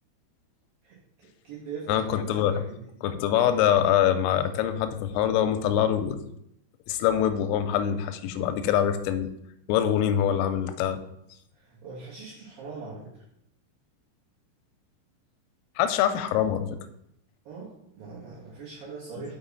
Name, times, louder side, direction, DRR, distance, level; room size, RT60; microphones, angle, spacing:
voice 1, 0.8-2.0 2.4-2.9 11.5-13.2 17.5-19.3, right 4 dB, 70° right, -6 dB, 2.3 m, -41 dB
voice 2, 1.9-2.6 3.0-6.3 6.9-9.3 9.7-11.0 15.8-16.7, left 10 dB, 90° left, 10 dB, 3.2 m, -24 dB
6.4 x 5.9 x 3.9 m, 0.78 s
omnidirectional pair, 5.8 m